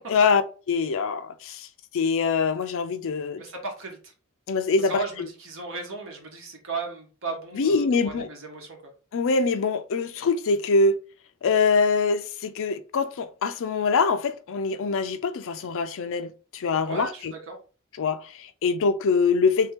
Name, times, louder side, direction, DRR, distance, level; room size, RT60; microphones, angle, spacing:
voice 1, 0.1-0.4 0.7-1.7 1.9-3.4 4.5-5.3 7.5-8.3 9.1-11.0 11.4-17.3 18.0-19.7, left 4 dB, 65° left, 0.4 m, -24 dB
voice 2, 3.4-4.1 4.8-8.9 16.8-17.6, right 3 dB, 65° right, 1.1 m, -35 dB
3.3 x 2.8 x 3.5 m
head